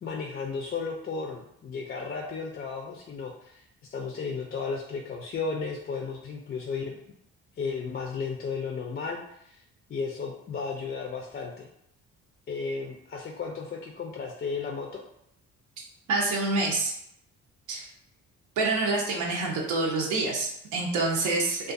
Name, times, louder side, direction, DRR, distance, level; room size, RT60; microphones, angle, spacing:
voice 1, 0.0-3.6 3.9-7.0 7.6-9.6 9.9-11.7 12.5-15.0, left 5 dB, 35° left, -1 dB, 0.4 m, -34 dB
voice 2, 16.1-16.9 17.7-17.9 18.6-21.7, right 3 dB, 80° right, -1 dB, 0.6 m, -27 dB
2.4 x 2.3 x 2.5 m, 0.73 s
cardioid pair, 90°, 30 cm